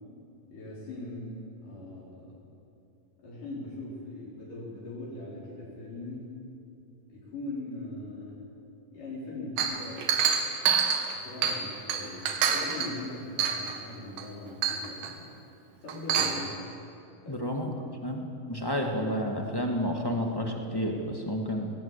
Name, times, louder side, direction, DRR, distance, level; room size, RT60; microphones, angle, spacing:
voice 1, 0.5-2.3 3.2-6.3 7.1-8.4 8.9-10.2 11.1-15.1 15.8-16.5 17.2-17.4, left 2 dB, 65° left, -6 dB, 5.9 m, -40 dB
Chink clink, 9.6-11.6 11.9-12.9 13.4-13.8 14.2-14.3 14.6-15.1 15.9-16.4, right 7 dB, 90° right, 3.4 m, -27 dB
voice 2, 17.3-17.7 18.0-21.7, equal, 20° left, 1 dB, 0.6 m, -30 dB
20.0 x 18.5 x 8.3 m, 2.7 s
omnidirectional pair, 4.0 m